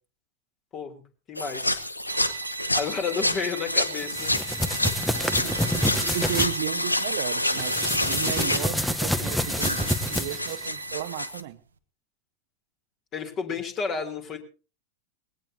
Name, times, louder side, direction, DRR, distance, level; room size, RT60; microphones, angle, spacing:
voice 1, 1.3-1.8 2.7-4.6 8.4-8.6 13.1-14.4, left 5 dB, 30° left, 6 dB, 3.2 m, -32 dB
sound 1, 1.4-11.4, left 1 dB, 85° left, 1.0 m, -29 dB
sound 2, 2.0-11.4, right 7 dB, 70° right, 1.1 m, -39 dB
sound 3, 4.0-6.5 7.5-10.7, equal, 5° left, 1.0 m, -28 dB
voice 2, 5.4-11.6, right 12 dB, 50° right, 10 dB, 1.1 m, -34 dB
20.5 x 17.5 x 2.8 m, 0.35 s
figure-of-eight pair, 90°, 0 cm